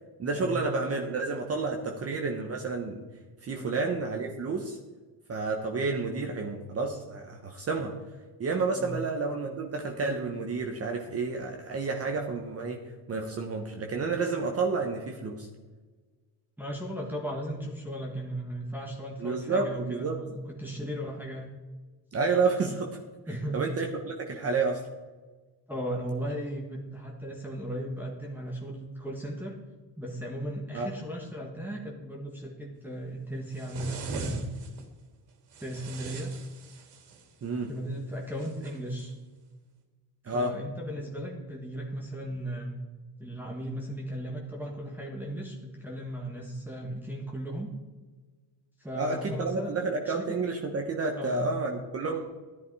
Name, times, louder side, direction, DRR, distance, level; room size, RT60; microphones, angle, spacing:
voice 1, 0.2-3.0 3.4-4.8 5.3-7.9 8.4-12.8 13.1-15.5 19.2-20.2 22.1-23.0 23.3-24.8 30.7-30.9 37.4-37.7 40.2-40.5 48.9-52.2, right 4 dB, 30° right, 2 dB, 1.3 m, -30 dB
voice 2, 16.6-21.5 23.3-23.6 25.7-29.6 30.0-34.5 35.6-36.3 37.7-39.1 40.3-42.8 43.2-47.7 48.8-49.8 50.1-50.4 51.2-51.5, right 1 dB, 5° right, -3 dB, 1.7 m, -36 dB
sound 1, 33.5-34.8 35.5-37.3 38.4-39.1, right 3 dB, 55° right, 2.8 m, -39 dB
14.5 x 10.5 x 4.8 m, 1.3 s
cardioid pair, 130°, 48 cm